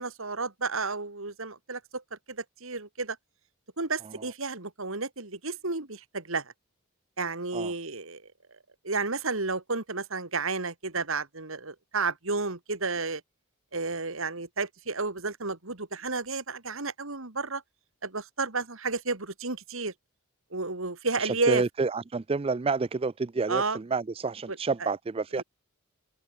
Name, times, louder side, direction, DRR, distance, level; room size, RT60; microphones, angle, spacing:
voice 1, 0.0-3.2 3.8-6.4 7.2-8.2 8.8-13.2 13.7-17.6 18.0-19.9 20.5-21.6 23.5-23.8 24.5-24.6 25.4-25.5, right 3 dB, 65° right, 2.4 m, -32 dB
voice 2, 21.1-25.4, right 4 dB, 25° right, 0.4 m, -29 dB
head